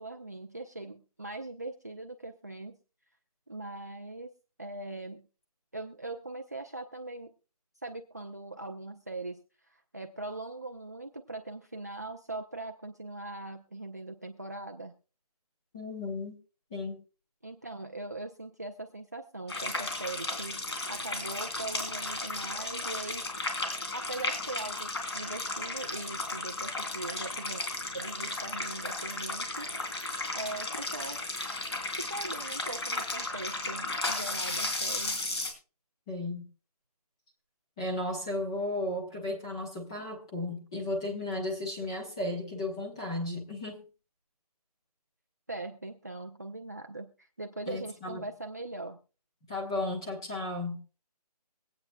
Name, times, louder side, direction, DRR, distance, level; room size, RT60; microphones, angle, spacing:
voice 1, 0.0-2.8 3.5-4.3 4.6-5.3 5.7-7.3 7.8-9.4 9.7-14.9 17.4-23.3 23.9-27.6 27.9-29.7 30.3-31.2 32.0-35.2 45.5-49.0, right 2 dB, 25° right, 0.5 m, -41 dB
voice 2, 15.7-16.4 16.7-17.0 36.1-36.5 37.8-43.8 47.7-48.2 49.5-50.8, left 2 dB, 10° left, 1.0 m, -34 dB
sound 1, 19.5-35.5, left 2 dB, 40° left, 3.1 m, -34 dB
23.5 x 8.6 x 2.3 m
hypercardioid pair, 175°, 20 cm